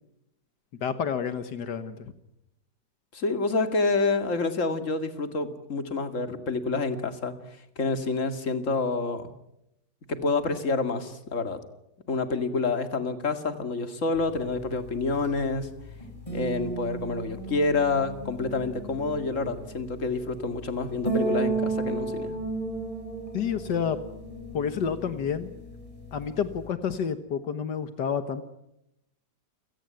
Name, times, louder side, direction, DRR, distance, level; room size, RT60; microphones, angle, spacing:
voice 1, 0.8-2.1 23.3-24.0 24.5-25.5 26.1-28.4, left 7 dB, 80° left, 10 dB, 1.9 m, -29 dB
voice 2, 3.1-7.3 7.8-9.3 10.1-11.6 12.1-15.7 16.3-22.4, left 3 dB, 45° left, 9 dB, 2.5 m, -28 dB
sound 1, 14.2-26.7, right 3 dB, 20° left, 7.2 m, -34 dB
29.0 x 18.5 x 9.1 m, 0.83 s
omnidirectional pair, 1.8 m